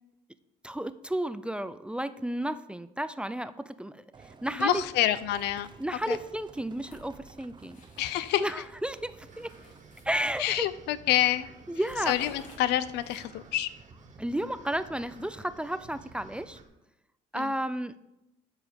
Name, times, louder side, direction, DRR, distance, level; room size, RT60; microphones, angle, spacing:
voice 1, 0.6-4.8 5.8-7.8 8.4-9.5 10.1-10.6 11.7-12.1 14.2-16.6 17.3-18.0, right 1 dB, 5° right, 13 dB, 0.4 m, -32 dB
Livestock farm animals working animals, 4.1-16.6, right 5 dB, 25° right, 0.8 m, -53 dB
voice 2, 4.6-5.7 6.1-6.2 8.0-8.4 10.4-11.5 12.1-13.7 17.3-17.5, left 13 dB, 85° left, 15 dB, 0.6 m, -27 dB
sound 1, 5.3-5.7 6.0-8.4 8.8-10.7 11.1-11.3 11.6-13.5, left 1 dB, 45° left, 3.2 m, -53 dB
sound 2, 9.2-16.6, right 3 dB, 50° right, 1.8 m, -56 dB
12.5 x 4.9 x 5.2 m, 0.91 s
cardioid pair, 110°, 17 cm